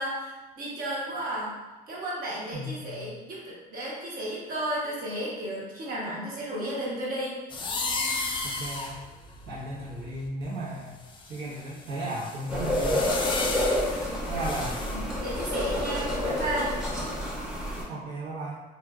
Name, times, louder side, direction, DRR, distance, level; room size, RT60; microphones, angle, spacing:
voice 1, 0.0-1.5 1.9-7.4 14.3-14.5 14.8-16.7, right 1 dB, 60° right, -6 dB, 1.1 m, -33 dB
voice 2, 2.5-3.1 8.5-9.0 9.5-11.0 11.3-13.1 14.3-14.7 17.9-18.6, right 1 dB, 80° right, -6 dB, 1.1 m, -35 dB
sound 1, 7.5-10.4 11.0-14.9, left 3 dB, 30° left, 0.4 m, -34 dB
sound 2, 12.5-17.8, left 1 dB, 5° right, 0.7 m, -29 dB
2.9 x 2.5 x 2.4 m, 1.2 s
cardioid pair, 110°, 17 cm